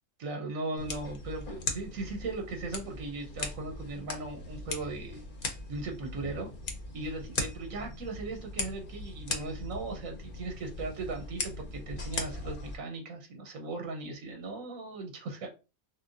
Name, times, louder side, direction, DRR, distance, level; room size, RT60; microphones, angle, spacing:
voice 1, 0.2-6.5 6.9-15.5, right 3 dB, 80° right, 4 dB, 1.3 m, -38 dB
sound 1, 0.8-12.8, left 2 dB, 45° left, 0.9 m, -39 dB
6.1 x 2.3 x 2.5 m, 0.29 s
omnidirectional pair, 1.4 m